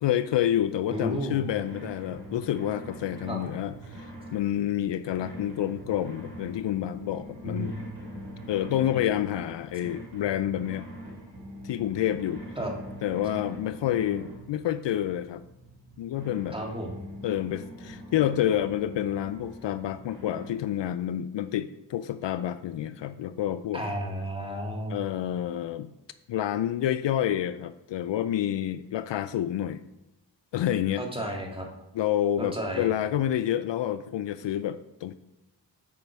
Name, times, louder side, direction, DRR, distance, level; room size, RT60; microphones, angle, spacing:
voice 1, 0.0-4.1 4.3-7.8 8.5-10.9 11.6-12.4 13.0-15.4 16.0-16.6 17.2-23.8 24.9-25.9 26.3-29.8 30.5-31.0 31.9-35.1, left 11 dB, 70° left, 13 dB, 0.5 m, -28 dB
voice 2, 0.9-1.5 3.3-3.4 7.4-8.0 8.9-9.1 12.6-12.8 16.5-17.0 23.7-25.0 31.0-31.7 32.4-32.9, right 1 dB, 10° right, 0 dB, 2.2 m, -33 dB
sound 1, 0.9-20.5, equal, 90° right, 2.9 m, -43 dB
8.6 x 5.1 x 4.7 m, 0.92 s
cardioid pair, 45°, 45 cm